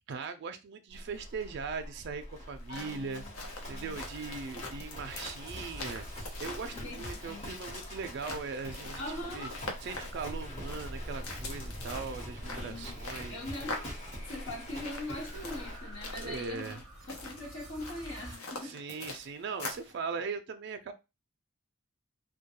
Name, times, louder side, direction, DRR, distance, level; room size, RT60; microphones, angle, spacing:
voice 1, 0.1-3.2 3.7-6.0 6.4-9.0 9.3-9.5 9.8-13.4 16.2-16.8 18.6-20.9, right 5 dB, 55° right, 0.3 m, -39 dB
Livestock farm animals working animals, 0.9-16.5, equal, 30° left, 0.9 m, -44 dB
sound 1, 2.5-19.9, left 2 dB, 85° left, 0.7 m, -44 dB
voice 2, 2.7-3.3 3.7-4.0 6.7-7.5 9.0-9.5 12.5-12.9 13.3-16.8 17.1-18.8, left 1 dB, 65° left, 1.1 m, -42 dB
sound 2, 5.5-18.4, right 1 dB, 5° right, 0.6 m, -49 dB
2.2 x 2.2 x 2.9 m
head